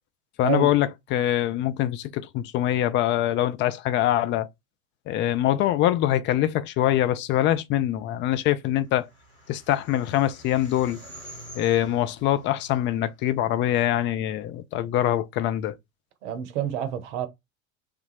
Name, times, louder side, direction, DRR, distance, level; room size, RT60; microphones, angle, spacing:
voice 1, 0.4-4.5 5.1-9.1 9.5-11.0 11.6-15.8, left 13 dB, 30° left, 0.4 m, -24 dB
sound 1, 8.4-13.9, right 1 dB, 85° left, 2.0 m, -47 dB
voice 2, 16.2-17.3, right 10 dB, 55° right, 0.7 m, -28 dB
3.3 x 2.3 x 3.2 m
figure-of-eight pair, 75°, 41 cm